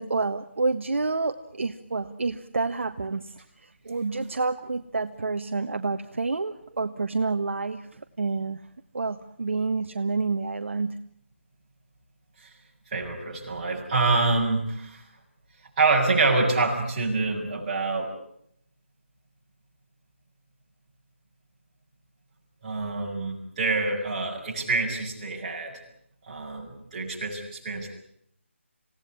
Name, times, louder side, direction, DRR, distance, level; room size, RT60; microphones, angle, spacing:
voice 1, 0.0-8.6 8.9-11.0, right 3 dB, 70° right, 7 dB, 1.4 m, -29 dB
voice 2, 12.9-15.0 15.8-18.1 22.6-25.8 26.3-27.9, right 3 dB, 35° right, -2 dB, 7.6 m, -26 dB
27.5 x 17.5 x 9.9 m, 0.72 s
figure-of-eight pair, 165°, 7 cm